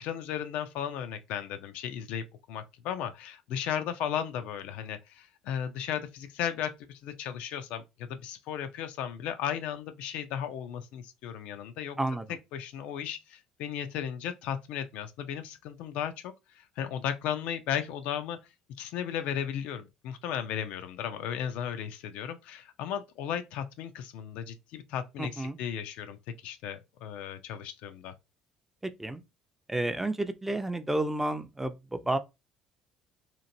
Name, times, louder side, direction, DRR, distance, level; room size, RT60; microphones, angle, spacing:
voice 1, 0.0-12.0 12.5-18.4 18.8-28.1, left 9 dB, 60° left, 0.3 m, -35 dB
voice 2, 25.2-25.6 28.8-29.2 29.7-32.2, right 2 dB, 10° right, 0.4 m, -31 dB
2.9 x 2.4 x 2.6 m
figure-of-eight pair, 55°, 2 cm